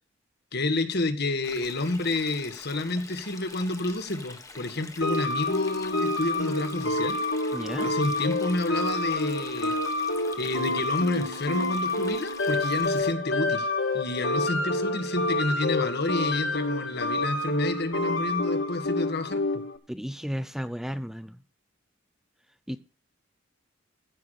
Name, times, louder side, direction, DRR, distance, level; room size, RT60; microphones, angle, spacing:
voice 1, 0.5-7.2 7.8-9.7 10.4-13.7 13.9-19.6, left 2 dB, 55° left, 8 dB, 1.7 m, -29 dB
Stream, 1.4-13.1, left 3 dB, 15° left, 1.3 m, -45 dB
sound 1, 5.0-19.8, left 2 dB, 75° left, 1.8 m, -28 dB
voice 2, 7.5-8.0 19.9-21.4 22.7-22.8, equal, ahead, 11 dB, 0.5 m, -33 dB
15.0 x 5.9 x 6.6 m, 0.34 s
head